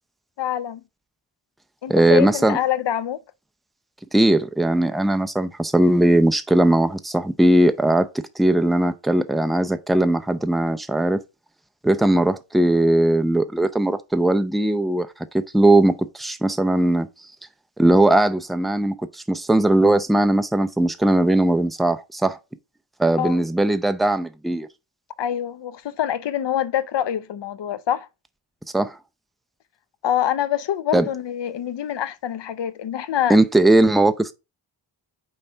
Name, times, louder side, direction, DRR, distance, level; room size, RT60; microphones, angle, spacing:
voice 1, 0.4-0.8 1.8-3.2 23.2-23.4 25.2-28.1 30.0-33.4, left 10 dB, 65° left, 0.7 m, -25 dB
voice 2, 1.9-2.6 4.1-8.1 8.4-11.2 11.8-15.1 15.3-17.1 17.8-22.4 23.0-24.7 28.7-29.0 30.9-31.1 33.3-34.3, right 1 dB, ahead, 0.5 m, -19 dB
5.7 x 3.9 x 4.4 m
wide cardioid pair, 100°, 46 cm